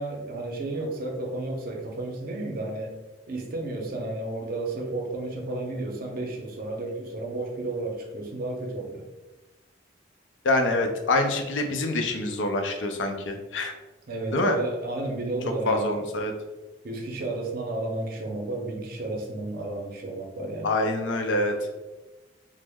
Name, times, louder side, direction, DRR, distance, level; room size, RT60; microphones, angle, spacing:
voice 1, 0.0-2.9 3.3-9.0 14.1-16.0 16.8-20.7, right 2 dB, 55° right, 1 dB, 0.6 m, -32 dB
voice 2, 10.4-13.7 14.3-14.6 15.7-16.3 20.6-21.5, left 2 dB, 80° left, 4 dB, 0.5 m, -25 dB
3.0 x 2.0 x 3.4 m, 1.1 s
head